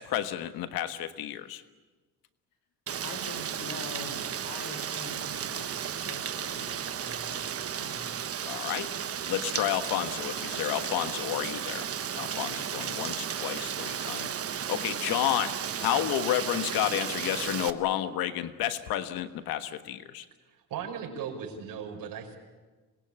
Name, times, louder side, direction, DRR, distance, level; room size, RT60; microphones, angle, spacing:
voice 1, 0.0-1.6 8.4-8.9 9.3-20.3, left 12 dB, 85° left, 10 dB, 1.4 m, -31 dB
Rain, 2.9-17.7, right 8 dB, 40° right, 1.2 m, -34 dB
voice 2, 3.0-8.1, left 3 dB, 70° left, 7 dB, 5.9 m, -44 dB
voice 3, 20.5-22.4, right 7 dB, 70° right, 2 dB, 5.4 m, -37 dB
27.0 x 21.0 x 8.8 m, 1.3 s
cardioid pair, 115°, 35 cm